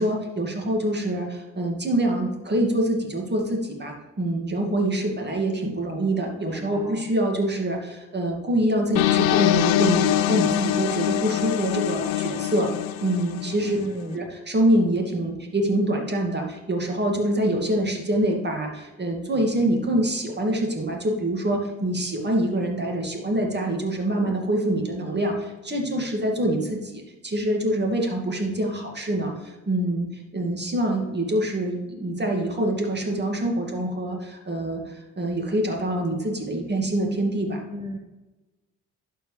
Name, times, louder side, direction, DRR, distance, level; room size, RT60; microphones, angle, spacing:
voice 1, 0.0-12.7 13.0-13.8 14.1-37.6, right 1 dB, 30° right, 1 dB, 2.1 m, -25 dB
voice 2, 6.4-7.0 13.7-14.3 37.7-38.0, equal, 15° right, 2 dB, 0.8 m, -34 dB
sound 1, 9.0-13.9, left 12 dB, 90° left, 0.5 m, -23 dB
11.5 x 4.6 x 3.3 m, 1.1 s
supercardioid pair, 55°, 32 cm